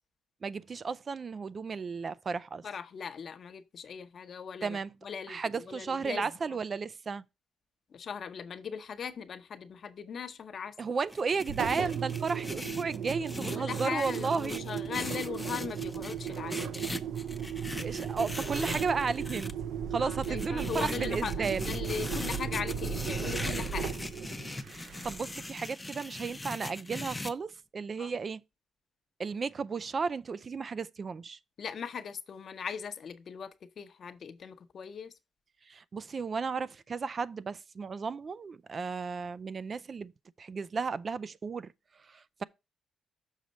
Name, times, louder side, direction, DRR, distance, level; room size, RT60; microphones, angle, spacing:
voice 1, 0.4-2.7 4.6-4.9 5.3-7.2 10.8-14.7 17.8-19.5 19.9-21.7 24.7-28.4 29.2-31.4 35.7-40.1 40.4-41.7 42.1-42.4, right 5 dB, 40° right, 0.3 m, -34 dB
voice 2, 2.6-6.3 7.9-10.7 13.5-16.8 20.0-21.3 21.7-24.0 28.0-28.1 31.6-35.1, left 7 dB, 55° left, 0.8 m, -39 dB
sound 1, 11.1-19.5 20.2-27.3, left 2 dB, 15° left, 0.6 m, -40 dB
Engine, 11.4-25.4, right 8 dB, 75° right, 0.8 m, -36 dB
6.5 x 5.0 x 4.1 m
cardioid pair, 90°, 0 cm